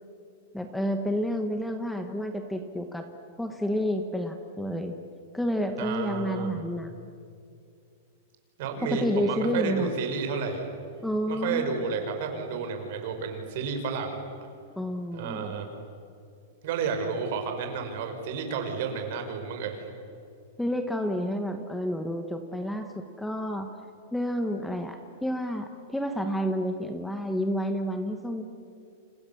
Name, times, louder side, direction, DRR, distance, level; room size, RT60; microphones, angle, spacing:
voice 1, 0.5-3.1 3.4-4.9 5.3-6.9 8.8-9.9 11.0-11.8 14.8-15.6 20.6-23.7 24.1-28.4, equal, ahead, 6 dB, 1.1 m, -30 dB
voice 2, 5.8-6.6 8.6-10.7 11.3-14.2 15.1-15.7 16.6-19.9, right 5 dB, 50° right, 5 dB, 5.3 m, -31 dB
29.0 x 29.0 x 7.1 m, 2.5 s
supercardioid pair, 170°, 0 cm